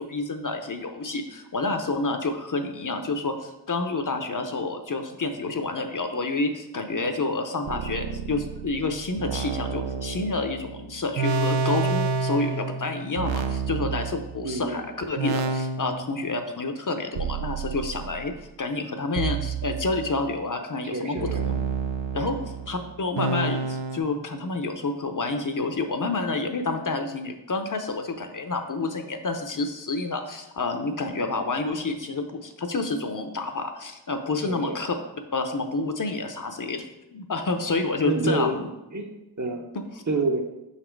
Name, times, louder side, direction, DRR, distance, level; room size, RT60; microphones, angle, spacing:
voice 1, 0.0-18.3 18.6-21.5 22.1-22.4 22.7-35.0 35.3-36.8 37.1-38.7 39.9-40.0, left 3 dB, 45° left, 6 dB, 0.6 m, -29 dB
sound 1, 7.7-14.7 15.2-16.3 17.2-18.3 19.2-20.4 21.2-24.0, right 4 dB, 85° right, 0.6 m, -29 dB
voice 2, 14.4-14.8 20.9-21.4 22.2-22.3 34.4-34.8 38.0-38.6 38.9-39.6 40.1-40.4, right 2 dB, 40° right, 2 dB, 0.9 m, -28 dB
5.8 x 4.1 x 4.5 m, 0.94 s
wide cardioid pair, 70°, 44 cm